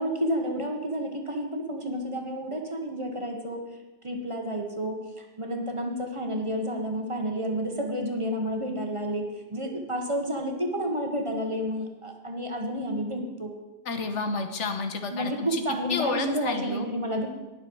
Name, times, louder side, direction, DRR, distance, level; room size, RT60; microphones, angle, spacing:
voice 1, 0.0-3.6 4.0-9.2 9.5-13.5 15.1-17.3, equal, 25° right, 2 dB, 1.5 m, -30 dB
voice 2, 13.8-15.6 15.9-16.9, left 4 dB, 90° left, 7 dB, 1.5 m, -30 dB
19.5 x 6.7 x 4.7 m, 1.1 s
omnidirectional pair, 1.2 m